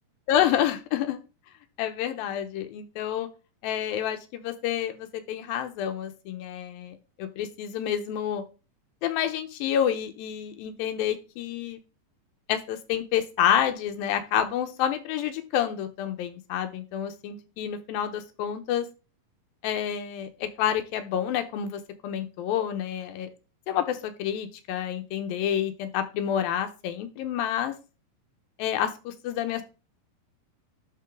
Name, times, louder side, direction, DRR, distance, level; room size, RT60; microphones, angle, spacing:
voice 1, 0.3-1.2 1.8-3.3 3.6-8.4 9.0-11.8 12.5-18.9 19.6-23.3 23.7-27.7 28.6-29.6, left 10 dB, 85° left, 8 dB, 2.6 m, -28 dB
11.5 x 4.0 x 3.6 m, 0.31 s
omnidirectional pair, 4.2 m